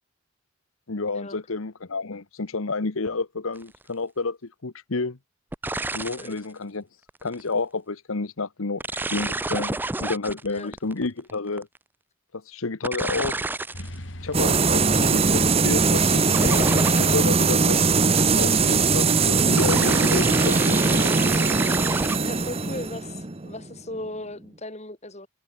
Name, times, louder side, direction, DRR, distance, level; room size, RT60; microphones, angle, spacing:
voice 1, 0.9-5.2 5.9-6.9 7.2-8.8 9.1-11.7 12.3-13.4 14.2-17.8 18.4-21.5, left 3 dB, 80° left, 1.1 m, -30 dB
sound 1, 3.6-3.8 5.5-6.4 7.1-7.4 8.8-11.8 12.8-14.0 14.3-14.9 16.3-17.4 17.8-18.4 19.6-22.2, right 2 dB, 10° right, 0.4 m, -29 dB
sound 2, 13.7-22.5, left 2 dB, 60° left, 8.0 m, -43 dB
sound 3, 14.3-24.0, right 4 dB, 30° right, 0.9 m, -21 dB
voice 2, 22.2-25.3, left 1 dB, 30° left, 3.5 m, -37 dB
head